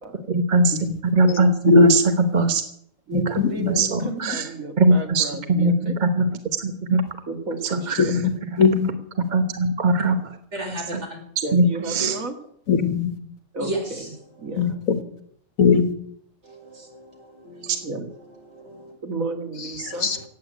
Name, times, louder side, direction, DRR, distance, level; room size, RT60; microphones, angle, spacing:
voice 1, 0.3-2.0 2.3-2.6 3.8-4.5 4.8-6.3 6.6-7.0 7.9-8.2 8.5-8.6 9.3-10.2 11.5-12.2, right 2 dB, 35° right, 8 dB, 1.1 m, -20 dB
voice 2, 1.7-2.5 3.1-3.7 8.0-8.3 8.6-8.9 12.7-13.2 14.6-15.0 15.6-15.9 20.0-20.2, left 5 dB, 80° left, 9 dB, 2.0 m, -19 dB
voice 3, 3.1-6.0 7.3-8.3 11.4-12.4 13.5-14.0 14.4-14.7 17.8-18.1 19.0-20.1, right 3 dB, 75° right, 5 dB, 2.4 m, -32 dB
voice 4, 10.5-11.2 13.6-14.1 14.4-14.7 16.4-17.8 18.1-18.9 19.8-20.2, right 1 dB, 55° right, 1 dB, 5.0 m, -35 dB
15.5 x 8.7 x 9.2 m, 0.68 s
omnidirectional pair, 1.4 m